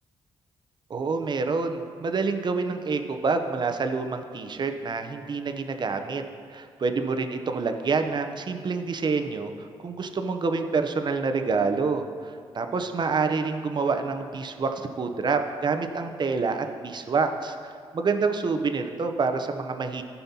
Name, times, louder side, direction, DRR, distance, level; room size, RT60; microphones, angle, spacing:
voice 1, 0.9-6.2 6.5-20.0, right 4 dB, 45° right, 6 dB, 0.7 m, -27 dB
14.0 x 5.6 x 2.8 m, 2.1 s
supercardioid pair, 60°, 11 cm